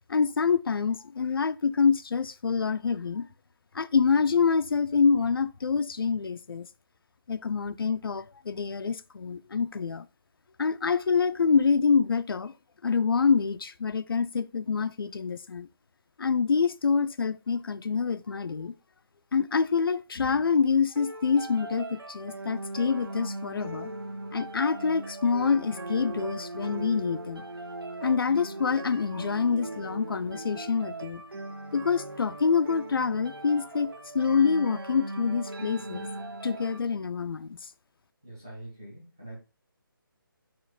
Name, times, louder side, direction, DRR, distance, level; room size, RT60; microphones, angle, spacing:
voice 1, 0.1-3.3 3.7-6.7 7.3-10.1 10.6-12.5 12.8-15.7 16.2-18.7 19.3-23.9 24.3-27.4 28.0-31.2 31.7-36.1 36.4-37.6, left 5 dB, 75° left, 0.4 m, -26 dB
sound 1, 21.0-36.8, right 2 dB, 85° right, 1.1 m, -39 dB
voice 2, 38.2-39.4, right 1 dB, 10° right, 0.5 m, -44 dB
4.3 x 2.5 x 4.6 m
hypercardioid pair, 180°, 12 cm